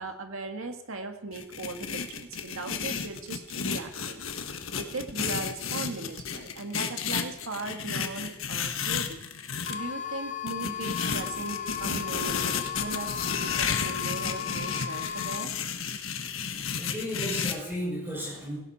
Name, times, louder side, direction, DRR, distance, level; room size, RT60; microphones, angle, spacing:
voice 1, 0.0-4.2 4.7-9.3 9.7-15.5, right 3 dB, 85° right, 5 dB, 1.9 m, -38 dB
sound 1, 1.3-9.8 10.5-17.5, left 6 dB, 70° left, 1.4 m, -32 dB
sound 2, 9.7-15.5, left 8 dB, 40° left, 0.7 m, -36 dB
voice 2, 16.8-18.6, equal, 10° right, -5 dB, 6.2 m, -34 dB
17.5 x 17.0 x 4.3 m, 0.89 s
head